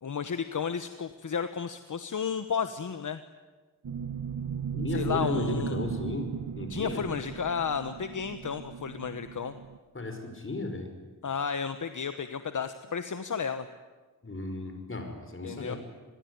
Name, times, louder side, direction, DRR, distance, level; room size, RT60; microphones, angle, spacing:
voice 1, 0.0-3.2 4.9-5.8 6.7-9.6 11.2-13.7 15.4-15.7, left 6 dB, 65° left, 10 dB, 1.2 m, -32 dB
sound 1, 3.8-9.8, right 7 dB, 85° right, 1.6 m, -36 dB
voice 2, 4.7-6.3 6.6-7.1 9.9-11.0 14.2-15.8, left 2 dB, 40° left, 6 dB, 5.3 m, -34 dB
27.0 x 21.0 x 9.6 m, 1.3 s
wide cardioid pair, 105°, 33 cm